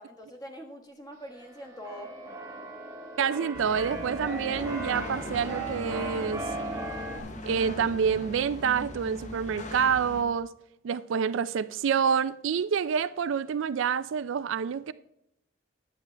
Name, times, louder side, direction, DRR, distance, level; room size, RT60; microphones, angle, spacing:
voice 1, 0.0-2.1, equal, 20° left, 1.3 m, -43 dB
Keyboard (musical), 1.3-7.2, right 2 dB, 15° right, 1.3 m, -37 dB
voice 2, 3.2-6.4 7.4-10.5 10.8-14.9, right 7 dB, 70° right, 0.4 m, -27 dB
sound 1, 3.5-10.2, left 1 dB, 35° left, 0.9 m, -40 dB
11.0 x 8.2 x 3.3 m
head